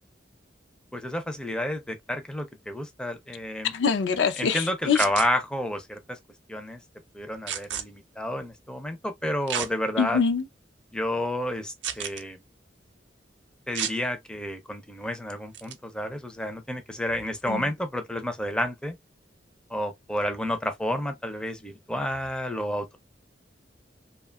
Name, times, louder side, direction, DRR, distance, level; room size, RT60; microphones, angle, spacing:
voice 1, 0.9-3.7 4.4-6.2 6.5-6.8 7.1-10.2 10.9-12.4 13.7-19.0 19.7-23.0, left 1 dB, 5° left, 0.4 m, -30 dB
voice 2, 3.6-5.0 10.0-10.4 17.5-17.6, left 6 dB, 85° left, 0.4 m, -24 dB
sound 1, 4.9-5.3 7.5-7.8 9.5-9.7 10.3-10.4 11.8-12.2 13.7-14.0 15.5-15.7, right 9 dB, 75° right, 0.4 m, -31 dB
2.7 x 2.2 x 2.2 m
head